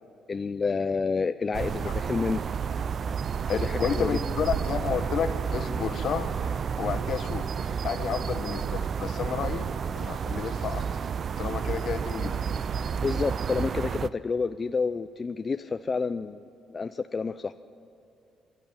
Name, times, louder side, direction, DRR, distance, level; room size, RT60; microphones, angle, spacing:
voice 1, 0.3-2.4 3.6-4.2 13.0-17.5, left 4 dB, 35° left, 10 dB, 0.4 m, -29 dB
sound 1, 1.5-14.1, right 6 dB, 50° right, 0.5 m, -31 dB
voice 2, 3.5-6.3 6.8-7.5 7.8-9.7 10.0-10.8 11.4-12.4, left 7 dB, 70° left, 8 dB, 1.4 m, -31 dB
24.5 x 12.5 x 8.8 m, 2.6 s
cardioid pair, 90°, 0 cm